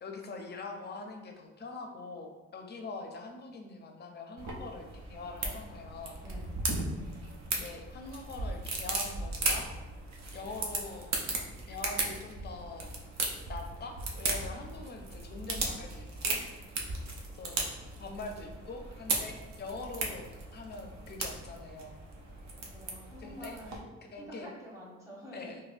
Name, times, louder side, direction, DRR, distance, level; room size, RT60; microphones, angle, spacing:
voice 1, 0.0-6.2 7.5-9.7 10.3-11.1 11.7-12.9 13.5-16.4 17.4-17.7 18.0-21.9 23.2-23.6 24.1-24.5 25.3-25.6, left 3 dB, 35° left, 4 dB, 0.5 m, -43 dB
sound 1, 4.4-23.8, right 3 dB, 65° right, 0.7 m, -37 dB
voice 2, 6.2-6.6 22.6-25.6, equal, 10° right, -5 dB, 1.1 m, -48 dB
4.1 x 2.2 x 2.5 m, 1.2 s
cardioid pair, 90°, 30 cm